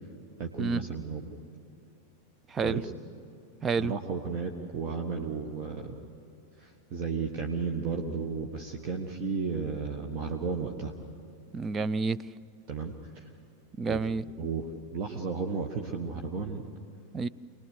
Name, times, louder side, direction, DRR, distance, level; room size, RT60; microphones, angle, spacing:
voice 1, 0.4-1.2 2.6-2.9 3.8-5.9 6.6-10.9 12.7-13.2 13.9-14.0 14.4-14.7 14.9-16.6, right 5 dB, 40° right, 2 dB, 1.4 m, -33 dB
voice 2, 2.5-2.8 3.6-3.9 11.5-12.2 13.8-14.2 17.1-17.3, right 4 dB, 20° right, 15 dB, 0.5 m, -29 dB
25.0 x 20.0 x 6.6 m, 2.8 s
figure-of-eight pair, 90°, 0 cm